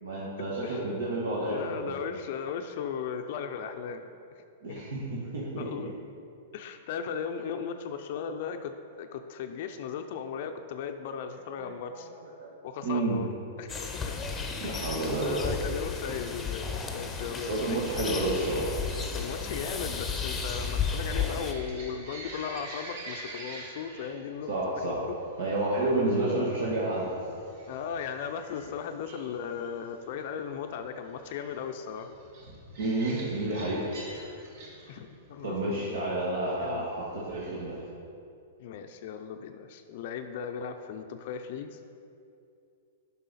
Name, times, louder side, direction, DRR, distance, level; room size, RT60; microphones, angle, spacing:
voice 1, 0.0-2.0 4.6-5.0 5.3-5.6 11.6-11.7 12.4-12.5 12.8-13.1 14.6-15.4 17.4-18.7 24.5-25.0 25.4-27.1 32.8-33.8 35.4-37.8, right 2 dB, 80° right, -6 dB, 1.5 m, -30 dB
voice 2, 1.5-4.4 4.7-4.8 5.6-5.9 6.5-12.1 12.6-14.2 14.6-17.8 19.1-25.2 27.7-32.1 34.9-36.0 36.6-36.9 38.6-41.8, left 7 dB, 55° left, 7 dB, 0.4 m, -37 dB
sound 1, 13.7-21.5, left 5 dB, 15° left, 0.7 m, -33 dB
sound 2, 18.2-37.9, right 2 dB, 60° right, 1.5 m, -48 dB
7.6 x 5.6 x 4.1 m, 2.5 s
hypercardioid pair, 130°, 0 cm